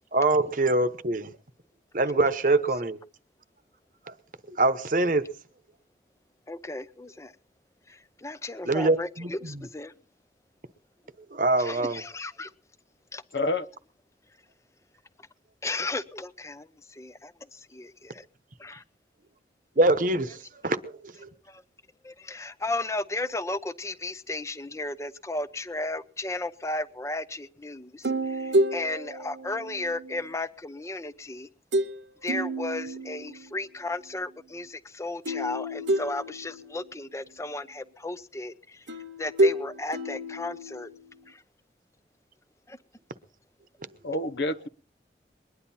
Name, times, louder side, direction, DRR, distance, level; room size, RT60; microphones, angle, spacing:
voice 1, 0.1-1.3 1.9-3.0 4.1-4.2 4.5-5.3 8.6-9.7 11.3-12.0 19.8-21.3, right 2 dB, 45° right, 0.9 m, -24 dB
voice 2, 6.5-7.3 7.9-9.9 11.6-12.5 13.1-13.2 15.6-18.2 18.6-18.8 21.5-21.6 22.0-31.5 32.2-38.8 39.2-40.9 41.3-41.4 42.7-42.8, left 2 dB, 15° left, 0.6 m, -35 dB
voice 3, 13.3-13.6 44.0-44.7, left 2 dB, 70° left, 0.9 m, -28 dB
sound 1, 28.0-30.3 31.7-32.0 32.3-33.6 35.3-37.0 38.9-41.2, right 1 dB, 85° right, 1.0 m, -29 dB
22.0 x 10.5 x 4.3 m
head